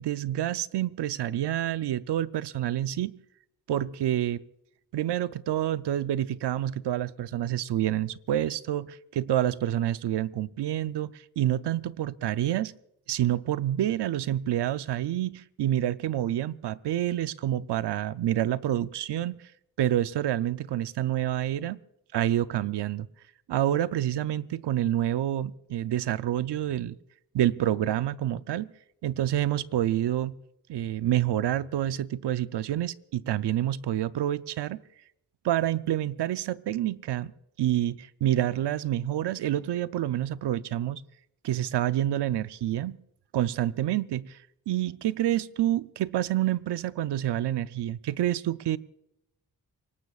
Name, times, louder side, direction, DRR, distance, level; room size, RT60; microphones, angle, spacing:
voice 1, 0.0-3.1 3.7-4.4 4.9-12.7 13.1-19.4 19.8-21.8 22.1-23.1 23.5-27.0 27.3-28.7 29.0-30.4 30.7-34.8 35.4-37.3 37.6-41.0 41.4-43.0 43.3-44.4 44.7-48.8, right 12 dB, 85° right, 0.6 m, -28 dB
26.5 x 18.0 x 2.4 m
wide cardioid pair, 110°, 40 cm